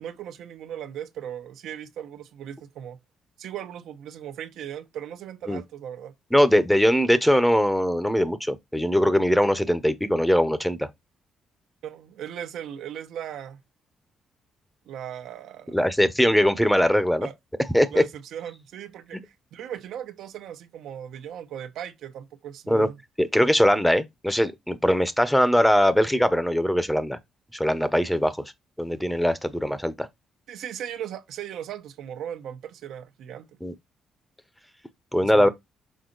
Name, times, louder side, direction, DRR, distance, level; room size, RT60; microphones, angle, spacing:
voice 1, 0.0-3.0 3.4-6.1 11.8-13.6 14.9-15.8 17.2-17.3 17.9-23.0 30.5-33.5 35.2-35.5, right 10 dB, 80° right, 0.9 m, -37 dB
voice 2, 6.3-10.9 15.7-17.3 17.7-18.0 22.7-22.9 23.2-27.2 27.5-28.4 28.8-30.1 33.6-33.7 35.1-35.5, equal, 5° left, 0.9 m, -21 dB
6.4 x 4.2 x 4.0 m
cardioid pair, 90°, 0 cm